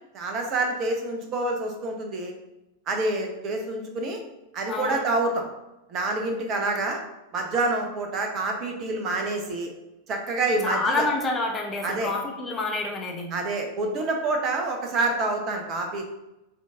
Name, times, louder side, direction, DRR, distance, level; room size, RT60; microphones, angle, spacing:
voice 1, 0.1-2.3 2.9-4.2 4.5-5.4 5.9-7.0 7.3-9.7 10.1-11.1 11.8-12.1 13.3-16.1, right 2 dB, 35° right, 3 dB, 0.9 m, -27 dB
voice 2, 4.7-5.0 10.6-13.3, left 3 dB, 20° left, 2 dB, 0.8 m, -28 dB
3.8 x 3.8 x 3.6 m, 0.96 s
figure-of-eight pair, 90°, 0 cm